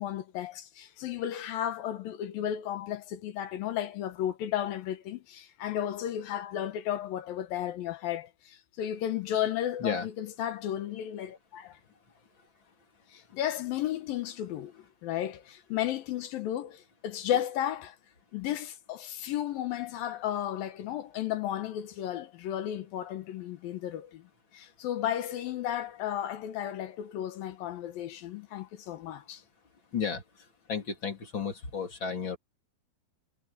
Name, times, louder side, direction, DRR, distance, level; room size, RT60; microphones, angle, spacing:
voice 1, 0.0-11.8 13.1-18.0 18.3-24.2 24.5-29.4, left 11 dB, 70° left, 2.7 m, -34 dB
voice 2, 29.9-32.4, left 6 dB, 30° left, 3.6 m, -33 dB
omnidirectional pair, 4.6 m